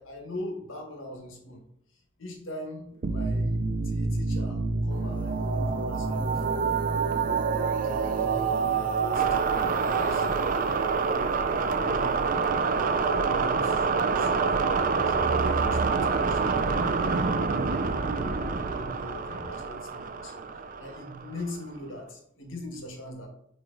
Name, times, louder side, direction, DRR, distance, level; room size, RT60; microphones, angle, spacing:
voice 1, 0.0-1.6 1.9-6.8 7.2-10.6 11.5-17.0 17.4-23.3, left 1 dB, 90° left, 2 dB, 1.5 m, -42 dB
sound 1, 3.0-21.5, right 4 dB, 45° right, 0.5 m, -26 dB
9.0 x 3.2 x 3.9 m, 0.76 s
head